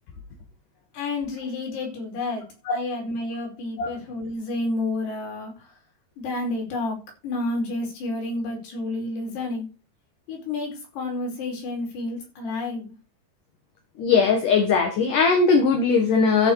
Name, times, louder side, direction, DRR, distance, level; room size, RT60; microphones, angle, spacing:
voice 1, 0.9-5.7 6.2-7.0 7.2-9.7 10.3-12.9, left 2 dB, 80° left, 0 dB, 6.9 m, -30 dB
voice 2, 14.0-16.5, left 5 dB, 60° left, 4 dB, 2.8 m, -19 dB
14.0 x 6.4 x 4.7 m, 0.29 s
omnidirectional pair, 4.7 m